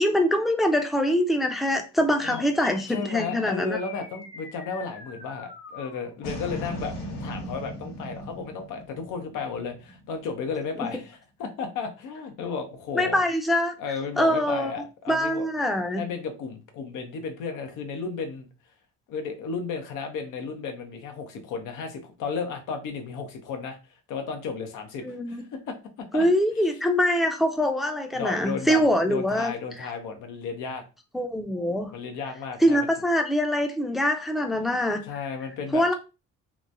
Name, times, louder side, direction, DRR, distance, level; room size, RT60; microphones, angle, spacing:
voice 1, 0.0-3.8 12.9-13.7 14.2-14.7 15.1-16.0 25.0-25.3 26.1-29.5 29.8-29.9 31.1-31.9 32.6-35.0 35.7-35.9, equal, ahead, 0.4 m, -24 dB
sound 1, 2.2-10.8, left 1 dB, 60° left, 1.2 m, -40 dB
voice 2, 2.9-6.9 7.2-13.2 13.8-15.5 15.9-18.5 19.1-23.8 24.1-26.2 28.2-30.8 31.9-32.9 35.0-35.9, left 5 dB, 90° left, 0.7 m, -34 dB
3.0 x 2.2 x 2.5 m
cardioid pair, 90°, 30 cm